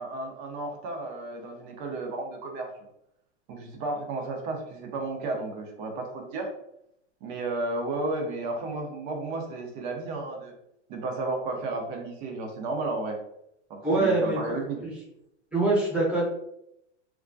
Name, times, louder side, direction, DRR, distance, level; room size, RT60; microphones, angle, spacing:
voice 1, 0.0-2.7 3.5-6.5 7.2-10.5 10.9-13.2 13.7-14.8, right 2 dB, 45° right, 2 dB, 0.6 m, -33 dB
voice 2, 13.8-14.9 15.5-16.3, right 2 dB, 5° right, -6 dB, 0.8 m, -25 dB
2.3 x 2.1 x 2.5 m, 0.79 s
hypercardioid pair, 120°, 36 cm